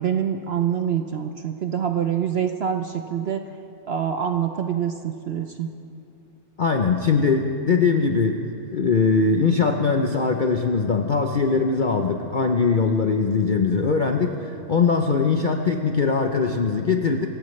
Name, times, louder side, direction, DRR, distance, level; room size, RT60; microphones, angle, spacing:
voice 1, 0.0-3.4 3.9-5.7, right 8 dB, 55° right, 6 dB, 0.7 m, -25 dB
voice 2, 6.6-8.4 8.7-17.3, left 4 dB, 50° left, 4 dB, 0.6 m, -21 dB
26.0 x 15.0 x 3.2 m, 2.6 s
omnidirectional pair, 1.6 m